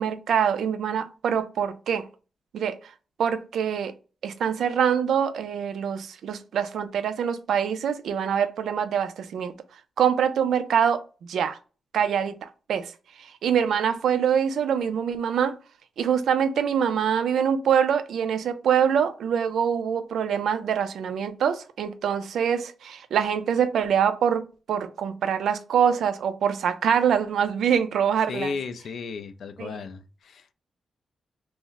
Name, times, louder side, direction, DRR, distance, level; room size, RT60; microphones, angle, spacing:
voice 1, 0.0-2.0 2.5-2.8 3.2-3.9 4.2-9.5 10.0-11.0 11.3-11.6 11.9-12.9 13.2-15.6 16.0-28.5 29.6-29.8, right 8 dB, 80° right, 0.3 m, -24 dB
voice 2, 28.3-30.5, left 5 dB, 60° left, 0.3 m, -34 dB
2.4 x 2.0 x 3.8 m
wide cardioid pair, 160°, 0 cm